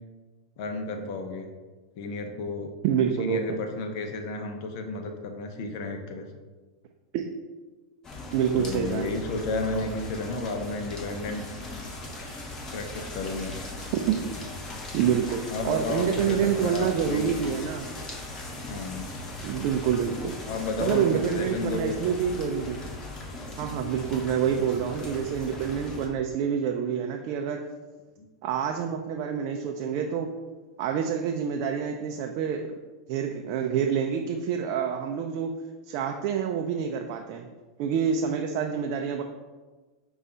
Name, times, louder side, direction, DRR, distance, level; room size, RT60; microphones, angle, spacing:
voice 1, 0.6-1.5 2.0-2.7 3.2-6.2 8.6-11.4 12.7-13.5 15.5-17.3 18.7-19.1 20.4-22.0 28.2-28.3, left 3 dB, 60° left, 4 dB, 0.7 m, -32 dB
voice 2, 2.8-3.6 7.1-7.2 8.3-9.1 14.1-14.2 14.9-17.9 19.4-20.3 20.8-22.9 23.6-27.6 28.4-30.3 30.8-32.7 33.1-35.5 35.9-37.4 37.8-39.2, right 8 dB, 50° right, 3 dB, 0.4 m, -27 dB
sound 1, 8.0-26.1, left 2 dB, 25° left, 0.9 m, -38 dB
5.3 x 2.3 x 3.8 m, 1.3 s
hypercardioid pair, 110°, 2 cm